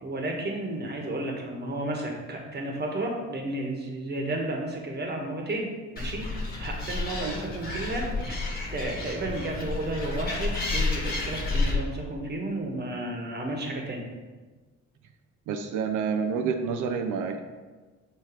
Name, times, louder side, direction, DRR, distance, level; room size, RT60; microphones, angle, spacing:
voice 1, 0.0-6.3 6.6-8.4 8.7-14.0, right 1 dB, 35° right, 1 dB, 1.3 m, -32 dB
Animal, 6.0-11.8, left 3 dB, 30° left, 1.4 m, -30 dB
voice 2, 15.5-17.4, right 6 dB, 80° right, 5 dB, 0.5 m, -28 dB
6.8 x 3.1 x 4.5 m, 1.3 s
cardioid pair, 90°, 30 cm